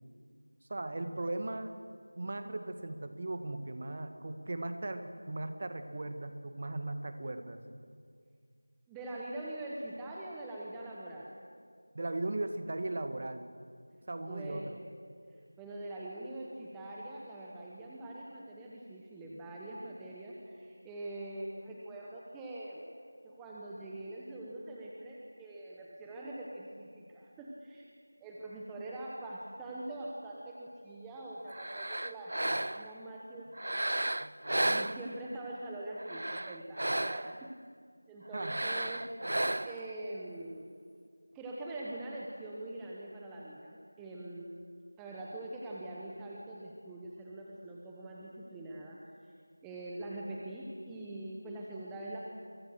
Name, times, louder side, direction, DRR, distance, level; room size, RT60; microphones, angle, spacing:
voice 1, 0.7-1.7 2.2-7.6 11.9-13.5 14.1-14.7 38.3-38.6, right 2 dB, 35° right, 8 dB, 1.8 m, -37 dB
voice 2, 8.9-11.3 14.2-14.7 15.6-22.8 23.2-27.9 28.2-34.0 34.6-37.5 38.1-39.1 39.6-40.7 41.3-44.5 45.0-49.3 49.6-52.2, right 1 dB, 5° right, -4 dB, 1.2 m, -43 dB
sound 1, 31.5-33.0 33.5-35.4 36.0-37.5 38.3-39.9, right 1 dB, 60° right, 0.7 m, -34 dB
29.0 x 24.0 x 6.5 m, 2.1 s
figure-of-eight pair, 175°, 0 cm